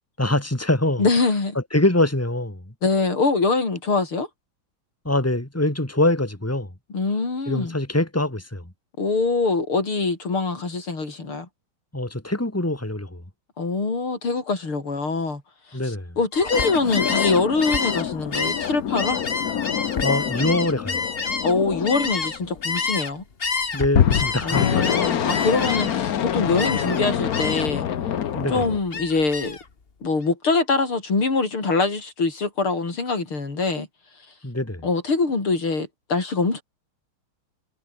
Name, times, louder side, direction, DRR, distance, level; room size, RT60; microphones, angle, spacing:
voice 1, 0.2-1.0 1.6-2.7 5.1-6.7 7.5-8.7 11.9-13.2 15.7-16.2 20.0-21.1 23.7-24.9 28.3-28.7 34.4-34.9, left 1 dB, 5° left, 3.5 m, -24 dB
voice 2, 1.0-1.6 2.8-4.3 6.9-7.8 9.0-11.5 13.6-15.4 15.8-19.2 21.4-23.2 24.4-27.9 28.5-29.6 30.0-33.9 34.8-36.6, left 3 dB, 75° left, 6.1 m, -24 dB
Gull seagull, 16.3-23.1 23.4-26.1 26.6-27.0 27.3-27.8 28.2-29.6, left 4 dB, 30° left, 1.6 m, -28 dB
sound 1, 16.5-22.9 23.9-28.8, left 9 dB, 50° left, 1.3 m, -26 dB
omnidirectional pair, 2.4 m